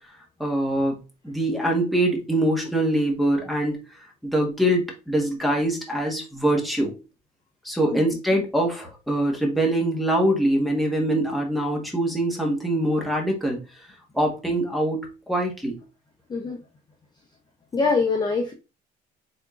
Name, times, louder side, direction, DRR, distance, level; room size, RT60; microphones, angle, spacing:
voice 1, 0.4-1.0 1.2-3.8 4.2-6.9 7.6-13.6 14.1-15.8, right 1 dB, ahead, -1 dB, 1.4 m, -23 dB
voice 2, 17.7-18.5, left 4 dB, 25° left, 3 dB, 0.6 m, -23 dB
4.2 x 3.6 x 2.4 m, 0.30 s
cardioid pair, 110°, 17 cm